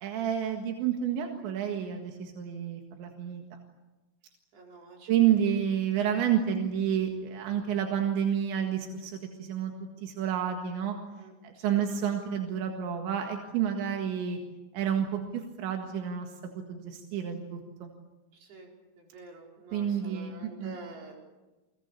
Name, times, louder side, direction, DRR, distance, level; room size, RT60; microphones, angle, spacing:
voice 1, 0.0-3.4 5.1-9.7 10.0-11.0 11.4-14.4 14.7-16.3 16.7-17.9 19.7-20.8, right 9 dB, 90° right, 3 dB, 4.1 m, -29 dB
voice 2, 4.5-5.4 11.2-11.8 18.3-18.7 19.0-21.2, right 2 dB, 60° right, 0 dB, 6.8 m, -48 dB
29.0 x 22.0 x 8.4 m, 1.1 s
omnidirectional pair, 5.1 m